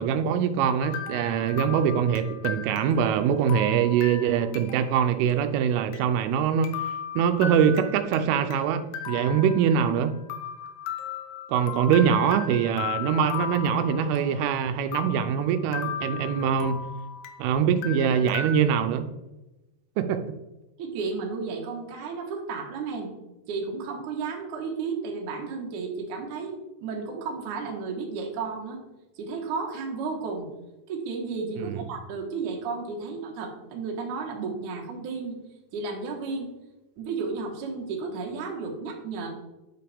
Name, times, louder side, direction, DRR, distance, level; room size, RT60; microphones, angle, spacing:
voice 1, 0.0-6.7 7.2-10.1 11.5-16.8 17.4-19.1 20.0-20.2 31.6-31.8, right 8 dB, 85° right, 8 dB, 3.1 m, -23 dB
sound 1, 0.8-5.0 5.3-5.4 5.9-6.0 6.6-8.6 8.9-10.0 10.3-14.5 14.9-17.5 17.8-18.5, left 6 dB, 85° left, 2.3 m, -36 dB
voice 2, 20.8-23.1 23.5-28.8 29.2-30.5 30.9-35.4 35.7-36.5 37.0-39.3, right 4 dB, 65° right, 0 dB, 1.9 m, -33 dB
9.7 x 6.8 x 3.5 m, 1.0 s
omnidirectional pair, 5.7 m